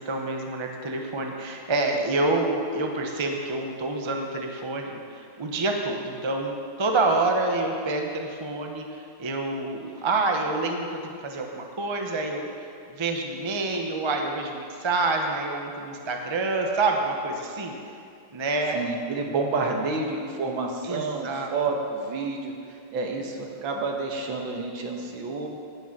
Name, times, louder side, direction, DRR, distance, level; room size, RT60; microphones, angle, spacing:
voice 1, 0.0-8.9 9.2-12.5 12.9-17.7 18.3-18.9 20.8-21.5, right 2 dB, 50° right, 2 dB, 0.3 m, -27 dB
voice 2, 18.7-22.5 22.9-25.5, right 3 dB, 65° right, 2 dB, 2.0 m, -29 dB
17.0 x 6.4 x 5.9 m, 2.4 s
omnidirectional pair, 2.4 m